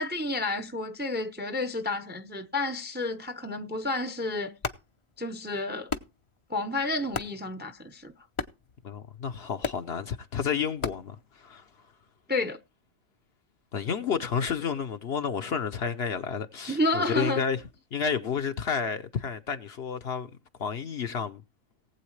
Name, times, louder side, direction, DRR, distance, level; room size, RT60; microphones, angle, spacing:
voice 1, 0.0-4.5 5.2-5.9 6.5-8.1 12.3-12.6 16.7-17.4, left 2 dB, 10° right, 0.5 m, -30 dB
sound 1, 4.5-11.9, left 4 dB, 35° left, 0.5 m, -40 dB
voice 2, 8.8-11.7 13.7-17.6 17.9-20.3 20.6-21.4, left 6 dB, 55° left, 0.9 m, -31 dB
19.0 x 8.0 x 3.2 m
omnidirectional pair, 1.4 m